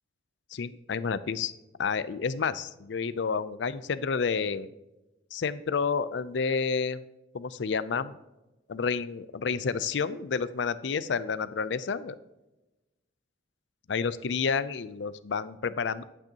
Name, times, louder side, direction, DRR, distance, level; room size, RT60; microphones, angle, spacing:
voice 1, 0.5-1.5 1.8-4.7 5.3-7.0 7.3-8.2 8.7-12.2 13.9-16.0, left 5 dB, 70° left, 15 dB, 0.5 m, -30 dB
10.5 x 8.6 x 2.9 m, 1.0 s
head